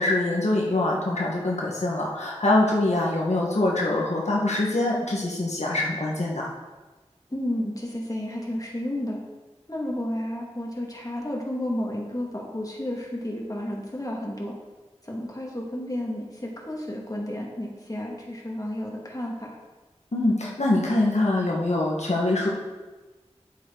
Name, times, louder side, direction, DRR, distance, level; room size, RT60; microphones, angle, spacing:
voice 1, 0.0-6.5 20.1-22.5, left 2 dB, 90° left, -3 dB, 1.6 m, -24 dB
voice 2, 7.3-9.2 9.7-14.5 15.0-19.6, left 1 dB, 30° left, -2 dB, 2.2 m, -32 dB
9.4 x 8.8 x 4.0 m, 1.2 s
wide cardioid pair, 50°, 11 cm